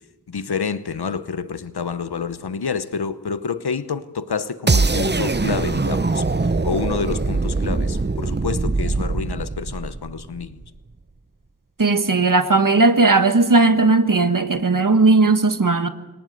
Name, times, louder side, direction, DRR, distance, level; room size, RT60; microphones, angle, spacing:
voice 1, 0.3-6.2 6.6-10.6, left 5 dB, 80° left, 1.0 m, -28 dB
sound 1, 4.7-10.6, right 3 dB, 25° right, 0.8 m, -22 dB
voice 2, 11.8-15.9, right 3 dB, 55° right, 1.6 m, -16 dB
23.0 x 19.0 x 8.2 m
wide cardioid pair, 45°, 38 cm